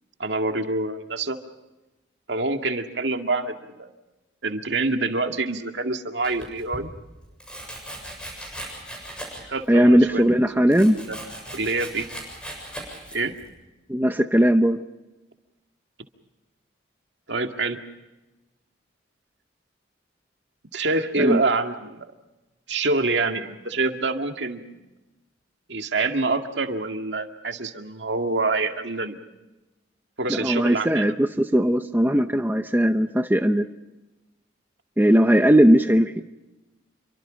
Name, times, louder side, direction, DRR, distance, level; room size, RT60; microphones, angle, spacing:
voice 1, 0.2-1.4 2.3-3.9 4.4-6.9 9.5-10.2 10.6-10.7 10.9-11.2 11.5-12.1 13.1-13.3 17.3-17.8 20.7-22.1 22.7-24.7 25.7-29.2 30.2-31.1, right 3 dB, 65° right, 5 dB, 2.0 m, -26 dB
Domestic sounds home sounds, 6.2-6.8 7.4-9.6 9.9-13.5, right 1 dB, 5° left, 7.3 m, -38 dB
voice 2, 9.7-11.0 13.9-14.8 21.2-21.4 30.3-33.7 35.0-36.1, equal, 10° right, 7 dB, 0.8 m, -18 dB
28.5 x 24.5 x 5.2 m, 1.1 s
head